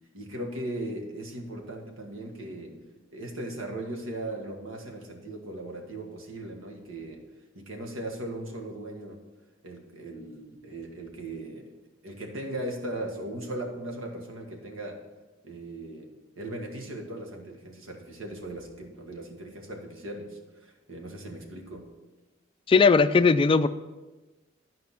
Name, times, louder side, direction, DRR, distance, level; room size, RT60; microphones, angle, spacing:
voice 1, 0.1-2.8 3.1-7.2 7.5-9.2 9.6-11.6 12.0-15.0 15.4-16.1 16.4-21.8, right 1 dB, 90° right, 1 dB, 1.7 m, -38 dB
voice 2, 22.7-23.7, left 4 dB, 25° left, 12 dB, 0.3 m, -18 dB
12.0 x 5.1 x 5.9 m, 1.1 s
head